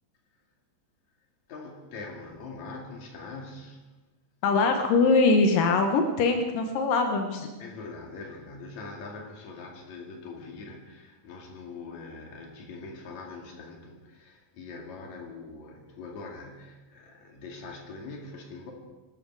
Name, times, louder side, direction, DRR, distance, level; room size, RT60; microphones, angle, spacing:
voice 1, 1.5-3.8 7.6-18.7, left 3 dB, 60° left, 1 dB, 3.6 m, -42 dB
voice 2, 4.4-7.5, left 3 dB, 90° left, 5 dB, 2.9 m, -22 dB
24.0 x 13.0 x 4.8 m, 1.2 s
omnidirectional pair, 3.8 m